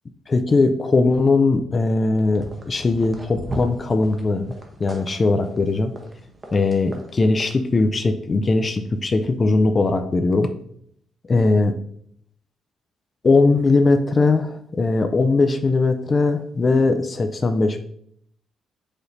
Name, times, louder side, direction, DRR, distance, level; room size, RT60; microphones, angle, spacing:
voice 1, 0.3-4.5 4.8-5.9 6.5-10.5 11.3-11.7 13.2-17.8, left 3 dB, 35° left, 8 dB, 0.3 m, -19 dB
sound 1, 2.1-7.5, equal, 25° right, 0.8 m, -37 dB
4.8 x 3.1 x 2.6 m, 0.67 s
cardioid pair, 90°, 0 cm